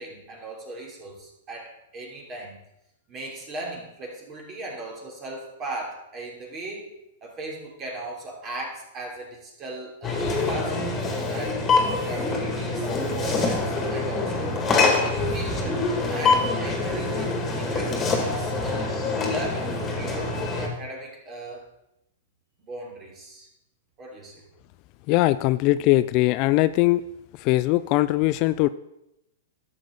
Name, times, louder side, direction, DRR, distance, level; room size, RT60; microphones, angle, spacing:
voice 1, 0.0-2.6 3.1-6.9 7.2-11.0 11.3-11.6 12.0-14.6 15.0-19.0 19.3-21.7 22.6-23.5 24.0-24.5, right 2 dB, 30° right, -1 dB, 3.2 m, -38 dB
sound 1, 10.0-20.7, left 3 dB, 20° left, 2.2 m, -25 dB
voice 2, 25.1-27.0 27.4-28.7, left 17 dB, 45° left, 15 dB, 0.3 m, -21 dB
11.5 x 7.5 x 3.9 m, 0.86 s
hypercardioid pair, 125°, 0 cm